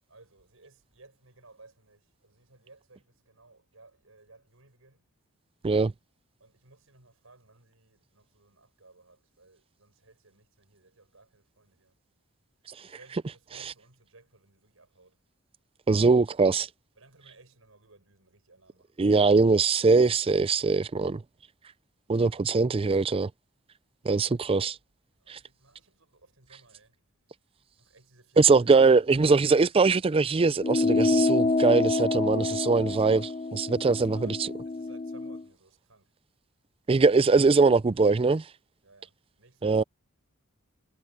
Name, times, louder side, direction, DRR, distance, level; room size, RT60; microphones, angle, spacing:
voice 1, 0.1-5.0 6.4-11.9 12.8-15.2 17.0-19.0 25.2-26.9 27.8-28.7 33.9-34.4 34.7-36.1 38.8-39.9, right 3 dB, 85° right, 5.3 m, -58 dB
voice 2, 15.9-16.7 19.0-21.2 22.1-23.3 24.1-24.8 25.3-25.4 28.4-34.5 36.9-38.4 39.6-39.8, right 4 dB, 25° right, 0.4 m, -22 dB
sound 1, 30.6-35.4, left 3 dB, 30° left, 0.5 m, -27 dB
head